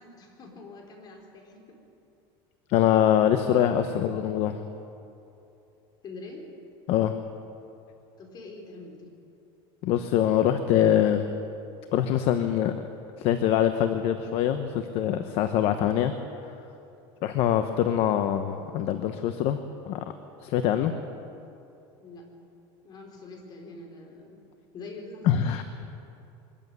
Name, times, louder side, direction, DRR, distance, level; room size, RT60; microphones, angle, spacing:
voice 1, 0.0-1.8 6.0-6.5 8.2-9.1 22.0-22.3 22.8-24.4 24.7-25.6, left 2 dB, 35° left, 1 dB, 4.6 m, -44 dB
voice 2, 2.7-4.6 6.9-7.1 9.8-11.3 11.9-12.7 13.2-16.1 17.2-19.6 19.9-20.0 20.4-20.9 25.3-25.6, left 10 dB, 50° left, 8 dB, 1.1 m, -24 dB
23.0 x 14.0 x 9.4 m, 2.8 s
supercardioid pair, 150°, 13 cm